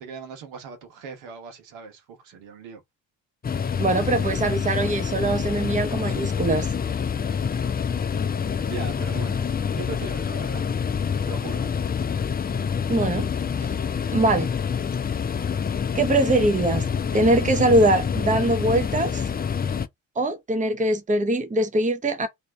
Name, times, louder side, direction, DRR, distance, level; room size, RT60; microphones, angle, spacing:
voice 1, 0.0-2.8 3.5-3.7 8.7-10.7 11.3-11.7, right 5 dB, 70° right, 1.3 m, -39 dB
sound 1, 3.4-19.9, left 7 dB, 20° left, 0.5 m, -27 dB
voice 2, 3.8-6.7 12.9-13.3 13.6-13.7 14.1-14.5 15.9-16.9 17.1-19.2 20.2-22.3, right 2 dB, 15° right, 0.9 m, -22 dB
3.1 x 2.9 x 3.6 m
figure-of-eight pair, 40°, 48 cm